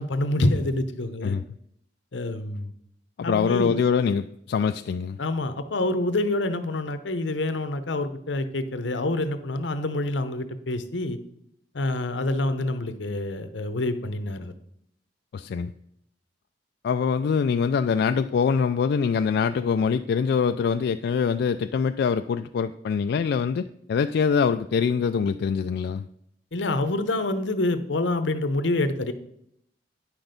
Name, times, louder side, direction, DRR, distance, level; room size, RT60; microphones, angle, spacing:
voice 1, 0.0-1.4 2.1-2.7 3.2-3.8 5.2-11.2 11.7-14.5 26.5-29.1, left 2 dB, 85° left, 11 dB, 0.8 m, -27 dB
voice 2, 3.2-5.2 15.3-15.7 16.8-26.1, left 6 dB, 60° left, 8 dB, 0.3 m, -24 dB
9.9 x 6.1 x 5.2 m, 0.75 s
head